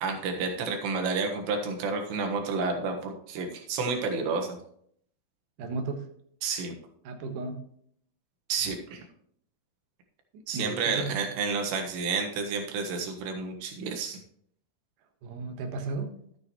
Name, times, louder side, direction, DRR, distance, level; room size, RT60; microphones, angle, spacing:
voice 1, 0.0-4.6 6.4-6.7 8.5-9.0 10.5-14.2, right 4 dB, 90° right, 3 dB, 3.7 m, -30 dB
voice 2, 5.6-6.1 7.0-7.6 10.3-11.2 15.2-16.2, right 3 dB, 60° right, 4 dB, 2.5 m, -34 dB
13.0 x 8.6 x 3.0 m, 0.66 s
omnidirectional pair, 4.8 m